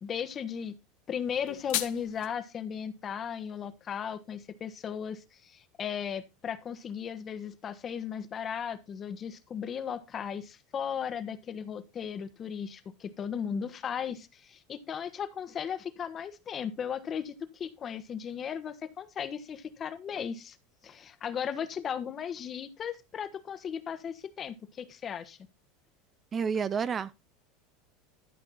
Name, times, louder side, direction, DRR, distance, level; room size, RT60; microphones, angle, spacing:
voice 1, 0.0-0.8 1.1-20.6 20.8-25.4, left 7 dB, 35° left, 1.2 m, -36 dB
sound 1, 1.3-2.3, left 16 dB, 70° left, 1.1 m, -35 dB
voice 2, 26.3-27.1, right 6 dB, 30° right, 0.5 m, -30 dB
13.0 x 5.5 x 4.1 m
supercardioid pair, 110°, 0 cm